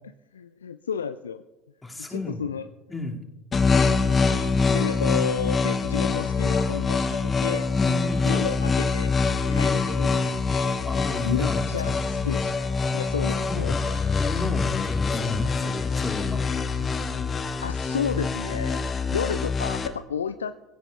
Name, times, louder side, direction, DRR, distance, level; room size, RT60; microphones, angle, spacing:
voice 1, 0.3-1.4 1.9-2.7 4.7-7.7 8.2-9.1 9.5-10.3 11.2-12.6 12.9-13.8 17.6-18.8 19.1-20.6, left 7 dB, 75° left, 13 dB, 0.3 m, -31 dB
voice 2, 1.8-2.5 2.9-3.2 7.7-8.5 9.4-9.8 10.8-12.0 13.4-13.9 14.2-16.5, left 2 dB, 10° left, 1 dB, 2.2 m, -33 dB
sound 1, 3.5-19.9, left 4 dB, 25° left, 1.0 m, -25 dB
23.5 x 15.5 x 2.3 m, 1.0 s
figure-of-eight pair, 65°, 0 cm